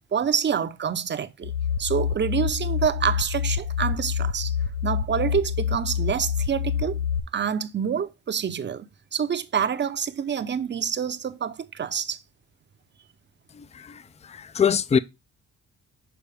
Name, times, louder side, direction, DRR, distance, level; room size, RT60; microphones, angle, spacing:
voice 1, 0.1-1.5 1.8-4.6 4.8-7.0 7.3-8.9 9.1-12.2, right 7 dB, 35° right, 0.7 m, -27 dB
sound 1, 1.4-7.2, left 7 dB, 75° left, 0.8 m, -27 dB
voice 2, 13.5-15.0, left 7 dB, 20° left, 0.5 m, -24 dB
7.1 x 4.1 x 3.3 m
cardioid pair, 90°, 30 cm